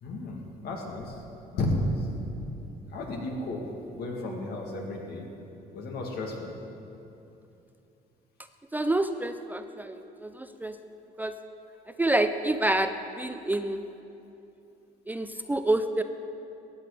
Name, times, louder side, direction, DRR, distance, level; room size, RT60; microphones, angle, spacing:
voice 1, 0.0-1.2 1.5-2.0 2.9-3.7 3.9-5.3 5.7-6.5, left 1 dB, 70° left, 0 dB, 2.1 m, -32 dB
voice 2, 8.7-10.8 11.2-11.3 12.0-13.8 15.1-16.0, right 1 dB, 10° right, 8 dB, 0.4 m, -28 dB
15.0 x 8.8 x 5.0 m, 2.8 s
cardioid pair, 110°, 17 cm